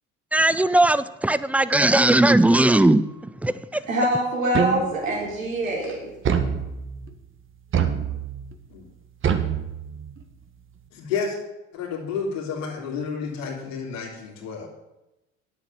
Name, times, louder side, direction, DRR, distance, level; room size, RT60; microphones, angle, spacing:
voice 1, 0.3-3.1 3.4-3.8, right 1 dB, 5° right, 0.4 m, -18 dB
voice 2, 3.9-6.0, right 1 dB, 85° right, 4.1 m, -24 dB
sound 1, 4.5-5.2 6.2-7.1 7.7-8.5 9.2-10.2, right 7 dB, 30° right, 1.4 m, -25 dB
voice 3, 10.9-11.4 11.7-14.7, left 5 dB, 70° left, 3.1 m, -30 dB
10.0 x 8.3 x 6.9 m
hypercardioid pair, 70°, 39 cm